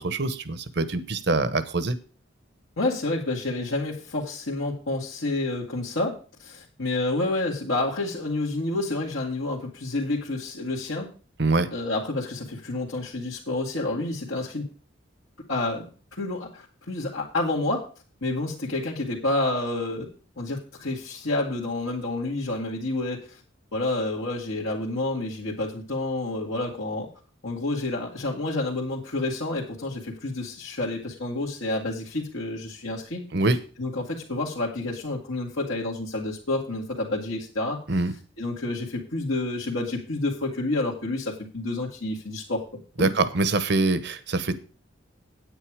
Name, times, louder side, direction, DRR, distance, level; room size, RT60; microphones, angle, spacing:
voice 1, 0.0-2.0 11.4-11.7 33.3-33.6 37.9-38.1 43.0-44.6, right 2 dB, 55° right, 14 dB, 1.0 m, -24 dB
voice 2, 2.8-11.1 11.7-14.7 15.5-15.9 16.2-17.9 18.2-20.1 20.4-23.4 23.7-27.1 27.4-33.2 33.8-37.8 38.4-42.6 43.0-43.1, left 2 dB, 80° left, -5 dB, 2.1 m, -29 dB
9.2 x 8.9 x 4.8 m, 0.37 s
head